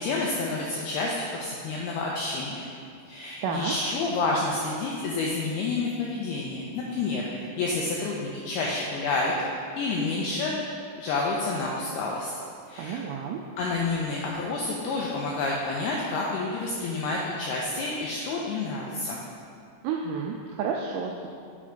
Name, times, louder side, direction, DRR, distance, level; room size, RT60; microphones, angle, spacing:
voice 1, 0.0-2.6 3.1-9.3 9.8-10.5 11.0-12.3 12.7-13.0 13.6-19.2, left 3 dB, 90° left, -3 dB, 2.2 m, -29 dB
voice 2, 3.4-3.7 12.8-13.4 19.8-21.3, right 6 dB, 85° right, 0 dB, 2.4 m, -30 dB
8.4 x 4.4 x 5.0 m, 2.3 s
omnidirectional pair, 5.3 m